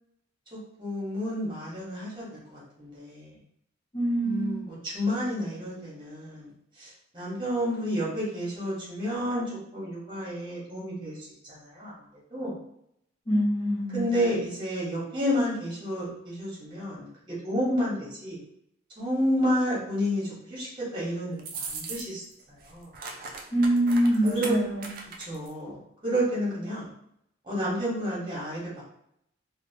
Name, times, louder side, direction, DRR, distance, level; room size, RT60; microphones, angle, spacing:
voice 1, 0.5-3.4 4.2-6.5 6.7-11.9 12.3-12.6 13.9-18.4 19.0-22.2 22.5-22.9 24.2-24.6 25.3-26.9 27.4-28.8, equal, 25° right, -6 dB, 1.1 m, -30 dB
voice 2, 3.9-4.6 13.3-14.0 23.5-24.9, right 1 dB, 30° left, -7 dB, 1.1 m, -24 dB
sound 1, 21.4-22.3 22.6-25.5, right 4 dB, 50° right, 0.3 m, -39 dB
2.7 x 2.1 x 2.7 m, 0.74 s
head